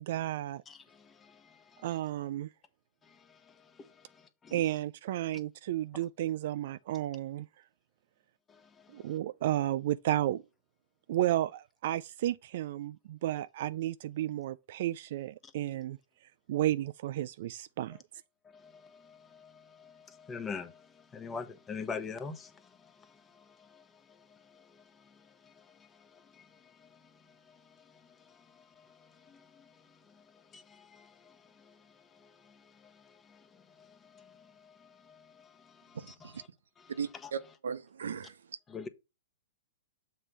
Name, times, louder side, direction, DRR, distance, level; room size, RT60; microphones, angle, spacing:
voice 1, 0.0-0.6 1.8-2.5 4.5-7.5 8.9-10.4 11.1-16.0 16.5-18.0, right 13 dB, 60° right, 0.3 m, -32 dB
voice 2, 0.7-2.0 3.0-4.8 8.5-9.2 15.4-15.5 17.9-18.0 18.4-36.5 36.8-37.3 38.7-38.9, left 5 dB, 20° left, 0.9 m, -48 dB
voice 3, 35.9-36.4 36.9-38.4, right 6 dB, 80° right, 0.8 m, -38 dB
7.4 x 3.3 x 5.4 m
hypercardioid pair, 125°, 0 cm